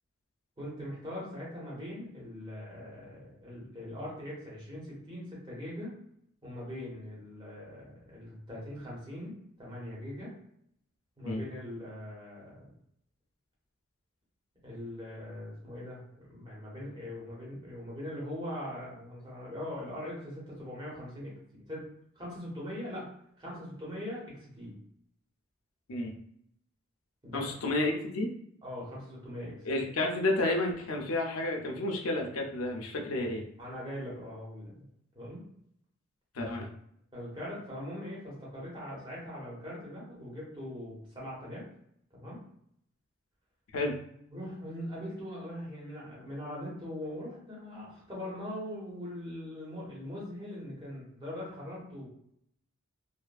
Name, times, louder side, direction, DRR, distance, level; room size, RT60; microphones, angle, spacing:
voice 1, 0.6-5.9 6.4-10.3 11.2-12.7 14.6-21.9 22.1-23.1 23.4-24.7 27.2-27.4 28.6-29.8 33.6-34.8 35.1-35.4 37.1-41.7 42.1-42.4 44.3-52.1, left 1 dB, 20° right, -5 dB, 1.1 m, -41 dB
voice 2, 27.3-28.3 29.7-33.5 36.3-36.7 43.7-43.9, left 2 dB, 65° left, 1 dB, 0.5 m, -31 dB
2.6 x 2.4 x 2.3 m, 0.71 s
head